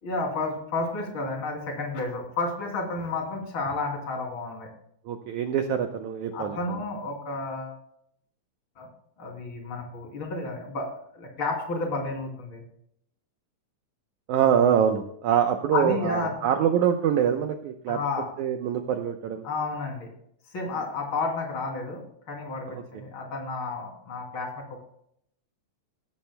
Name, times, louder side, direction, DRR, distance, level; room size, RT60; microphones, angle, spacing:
voice 1, 0.0-4.7 6.3-7.8 8.8-8.9 9.2-12.6 15.7-16.3 17.9-18.3 19.4-20.1 20.5-24.8, left 3 dB, 35° left, 1 dB, 3.2 m, -31 dB
voice 2, 5.0-6.6 14.3-18.0 18.4-19.4, right 8 dB, 90° right, 5 dB, 1.7 m, -24 dB
18.0 x 15.0 x 2.2 m, 0.70 s
omnidirectional pair, 4.6 m